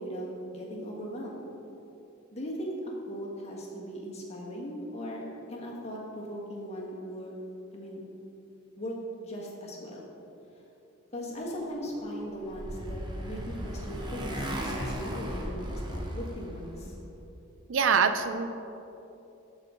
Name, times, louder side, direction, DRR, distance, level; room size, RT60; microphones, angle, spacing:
voice 1, 0.0-1.4 2.3-7.3 7.7-8.0 8.8-9.0 9.2-10.0 11.1-16.9, equal, 30° left, -3 dB, 1.4 m, -38 dB
Motorcycle, 12.0-17.0, equal, 20° right, 0.8 m, -36 dB
voice 2, 17.7-18.5, right 6 dB, 60° right, 9 dB, 0.4 m, -24 dB
13.5 x 5.4 x 3.7 m, 3.0 s
head